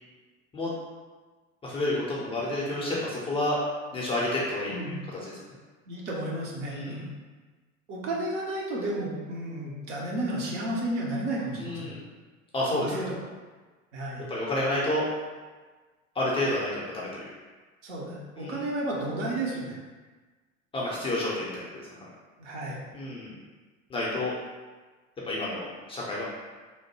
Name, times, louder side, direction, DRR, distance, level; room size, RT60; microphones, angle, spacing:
voice 1, 1.6-3.6 3.9-5.6 6.6-7.0 11.6-12.0 12.5-12.9 14.2-15.0 16.1-17.3 18.4-18.6 20.7-22.1 22.9-23.3 23.9-24.3 25.2-26.2, left 1 dB, 15° left, -5 dB, 0.5 m, -30 dB
voice 2, 4.7-5.0 5.9-7.1 7.9-11.9 12.7-13.2 13.9-14.2 17.8-19.8 22.4-22.8, right 1 dB, 60° right, -3 dB, 0.9 m, -32 dB
3.0 x 2.1 x 3.0 m, 1.4 s
figure-of-eight pair, 80°, 40 cm